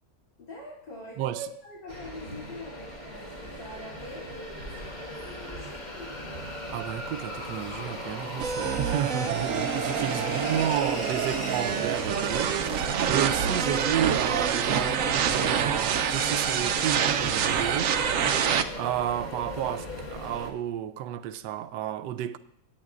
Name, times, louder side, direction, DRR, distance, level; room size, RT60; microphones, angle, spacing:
voice 1, 0.4-6.4 10.1-10.6, equal, 75° left, 3.6 m, -43 dB
sound 1, 1.9-20.5, left 1 dB, 25° left, 1.8 m, -37 dB
voice 2, 6.7-18.1 18.8-22.4, right 11 dB, 80° right, 1.2 m, -32 dB
sound 2, 8.4-18.6, right 8 dB, 65° right, 0.9 m, -27 dB
17.5 x 8.9 x 2.5 m
omnidirectional pair, 1.9 m